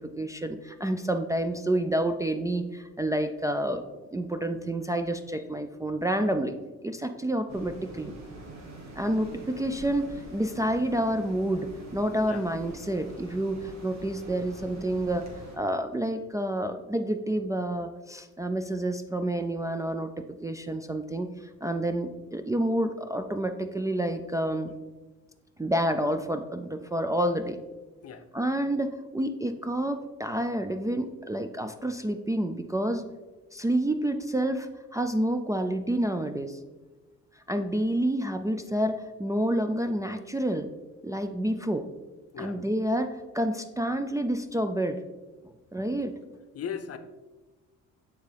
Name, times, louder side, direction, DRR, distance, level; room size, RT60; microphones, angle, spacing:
voice 1, 0.0-3.8 4.1-6.5 6.8-8.1 9.0-15.3 15.5-20.1 20.4-21.3 21.6-24.7 25.6-27.6 28.3-33.1 33.5-36.6 37.5-40.7 41.0-41.8 42.4-45.0 45.7-46.1, right 1 dB, 10° right, 4 dB, 0.3 m, -29 dB
sound 1, 7.5-15.6, right 1 dB, 60° right, 1.5 m, -45 dB
voice 2, 46.5-47.0, left 8 dB, 55° left, 8 dB, 0.6 m, -37 dB
8.9 x 3.6 x 3.4 m, 1.2 s
cardioid pair, 90°, 30 cm